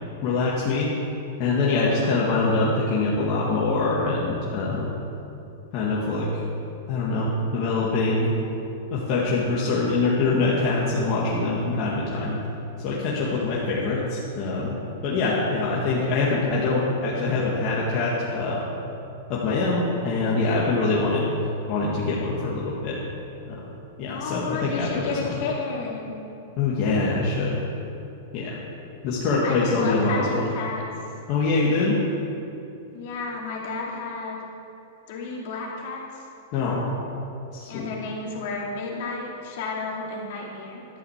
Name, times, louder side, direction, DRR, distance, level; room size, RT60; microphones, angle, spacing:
voice 1, 0.2-0.9 1.4-4.9 5.7-6.4 6.9-8.3 8.9-12.4 12.8-14.7 15.0-18.7 19.3-21.2 21.7-23.0 23.5-23.7 24.0-25.4 26.6-27.6 28.3-28.6 29.0-30.5 31.3-31.9 36.5-36.8 37.5-37.9, left 3 dB, 35° left, -6 dB, 1.9 m, -24 dB
voice 2, 24.1-26.2 29.4-30.8 32.9-34.4 35.1-36.2 37.7-40.9, left 4 dB, 55° left, -3 dB, 2.8 m, -32 dB
12.0 x 8.0 x 7.3 m, 2.7 s
supercardioid pair, 160°, 0 cm